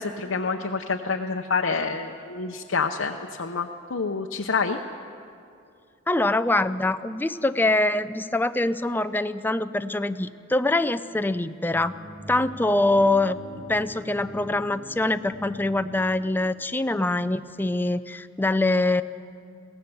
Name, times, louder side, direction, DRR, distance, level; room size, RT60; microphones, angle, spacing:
voice 1, 0.0-4.8, left 4 dB, 65° left, 4 dB, 0.7 m, -27 dB
voice 2, 6.1-12.0 12.3-19.0, left 2 dB, 10° left, 10 dB, 0.4 m, -24 dB
sound 1, 11.7-16.7, equal, 20° right, 1.5 m, -43 dB
23.0 x 17.0 x 7.0 m, 2.5 s
head